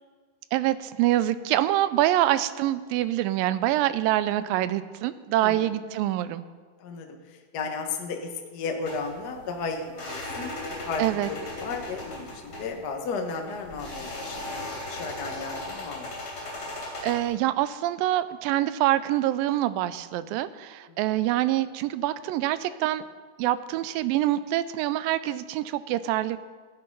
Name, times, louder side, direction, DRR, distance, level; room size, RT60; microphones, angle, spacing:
voice 1, 0.5-6.4 11.0-11.3 17.0-23.0 23.4-26.4, right 14 dB, 85° right, 15 dB, 2.3 m, -25 dB
voice 2, 5.4-5.7 6.8-10.6 10.8-16.1 20.8-21.3, left 4 dB, 80° left, 3 dB, 0.9 m, -34 dB
Slow Creaking Stereo, 8.9-17.3, left 2 dB, 40° left, 3.8 m, -37 dB
14.5 x 9.6 x 5.4 m, 1.5 s
omnidirectional pair, 4.0 m